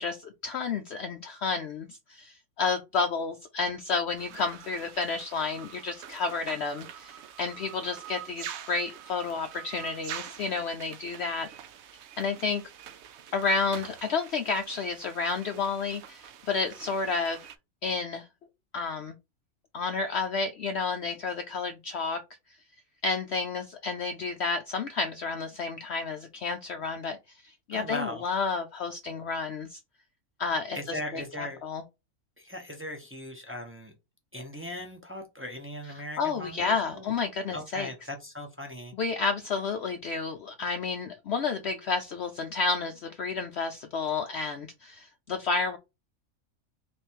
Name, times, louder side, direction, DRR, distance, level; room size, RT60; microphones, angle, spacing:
voice 1, 0.0-11.5 12.2-12.6 13.3-17.5 17.8-18.3 18.7-19.1 19.7-22.2 23.0-29.8 30.4-31.8 35.8-37.9 38.9-45.8, left 4 dB, 65° left, 7 dB, 0.7 m, -31 dB
sound 1, 4.2-17.6, right 9 dB, 65° right, 0.8 m, -45 dB
voice 2, 27.7-28.2 30.7-31.6 32.4-33.9 34.3-37.1 37.5-38.9, left 1 dB, 15° right, 2 dB, 0.6 m, -38 dB
3.5 x 3.1 x 4.3 m, 0.24 s
omnidirectional pair, 1.5 m